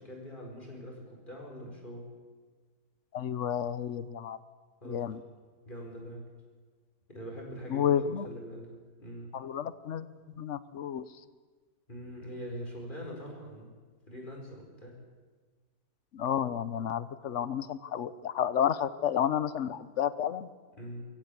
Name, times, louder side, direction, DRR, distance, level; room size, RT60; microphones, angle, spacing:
voice 1, 0.0-2.1 4.8-5.2 5.7-6.2 7.1-8.0 8.2-8.7 9.0-9.3 11.9-13.7 14.1-15.0 20.8-21.0, equal, 30° left, 0 dB, 5.2 m, -43 dB
voice 2, 3.1-4.4 4.8-5.2 7.7-8.3 9.3-10.1 10.4-11.1 16.1-20.5, left 9 dB, 55° left, 15 dB, 1.0 m, -31 dB
23.0 x 15.0 x 8.6 m, 1.4 s
omnidirectional pair, 1.8 m